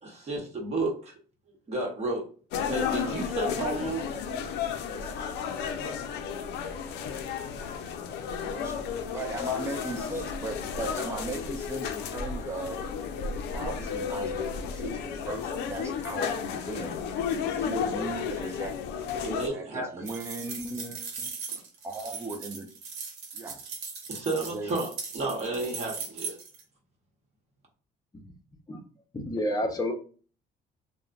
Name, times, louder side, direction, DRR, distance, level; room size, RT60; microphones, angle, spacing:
voice 1, 0.0-1.1 1.7-2.3 2.6-4.1 19.2-20.1 21.5-21.6 24.1-26.4, right 2 dB, 40° right, -1 dB, 1.0 m, -32 dB
sound 1, 2.5-19.5, left 7 dB, 80° left, 0.4 m, -33 dB
voice 2, 9.1-12.8 13.5-17.0 17.5-18.8 19.5-21.3 21.8-22.7 23.3-23.6 24.3-24.7, right 2 dB, 15° right, 4 dB, 0.4 m, -37 dB
sound 2, 20.1-26.6, right 5 dB, 85° right, 0.9 m, -39 dB
voice 3, 29.1-29.9, left 1 dB, 20° left, 3 dB, 0.7 m, -29 dB
3.0 x 2.1 x 2.4 m, 0.40 s
cardioid pair, 110°, 17 cm